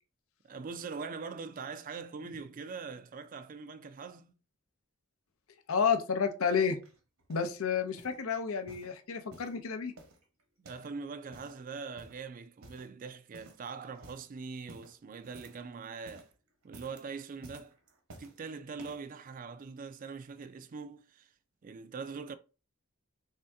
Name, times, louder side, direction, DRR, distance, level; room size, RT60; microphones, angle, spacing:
voice 1, 0.4-4.3 10.6-16.3 16.6-17.7 18.2-21.3 21.6-22.3, right 5 dB, 40° right, 0.3 m, -42 dB
voice 2, 5.7-6.8 7.3-9.9, left 6 dB, 70° left, 0.6 m, -30 dB
sound 1, 6.8-7.6 8.0-8.2 8.6-9.6 10.0-11.0 11.2-11.6 12.0-12.3 12.6-13.0 13.3-13.7 13.9-14.3 14.7-15.7 15.9-16.3 16.6-17.1 17.4-18.4 18.8-19.1 19.8-19.9, right 1 dB, 75° right, 1.0 m, -54 dB
3.5 x 2.7 x 3.4 m
head